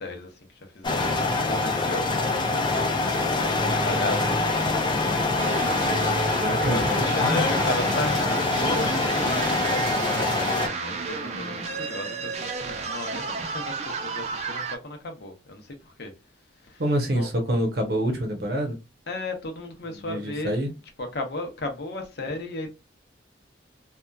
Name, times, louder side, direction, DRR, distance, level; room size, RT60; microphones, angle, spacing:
voice 1, 0.0-2.9 3.8-5.9 6.6-16.1 16.6-16.8 17.1-17.3 19.1-20.5 21.0-22.7, left 2 dB, 60° left, 0.7 m, -35 dB
sound 1, 0.8-10.7, left 3 dB, 25° left, 0.4 m, -24 dB
sound 2, 5.4-14.8, right 4 dB, 35° right, 0.4 m, -32 dB
voice 2, 6.3-7.4 16.8-18.8 19.9-20.7, equal, 55° right, 0.8 m, -26 dB
2.8 x 2.3 x 2.2 m
head